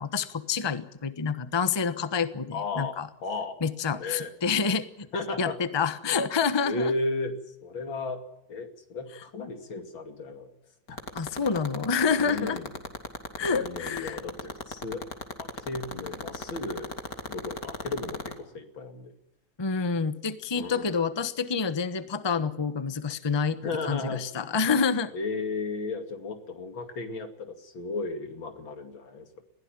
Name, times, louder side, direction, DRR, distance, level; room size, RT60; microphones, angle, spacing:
voice 1, 0.0-3.1 3.6-4.9 5.4-6.9 11.1-12.6 13.4-14.2 19.6-23.6 23.9-25.1, left 5 dB, 20° left, 12 dB, 0.8 m, -28 dB
voice 2, 2.5-3.0 3.2-3.6 4.0-4.3 5.1-5.6 6.6-7.3 7.6-8.2 8.5-10.5 10.9-11.0 12.2-12.7 13.4-15.0 15.4-16.9 17.3-19.1 20.5-21.0 23.6-24.2 25.1-29.4, left 3 dB, 80° left, 6 dB, 3.2 m, -34 dB
sound 1, 10.9-18.3, left 4 dB, 45° left, 2.8 m, -33 dB
21.0 x 16.0 x 9.1 m, 0.83 s
omnidirectional pair, 2.1 m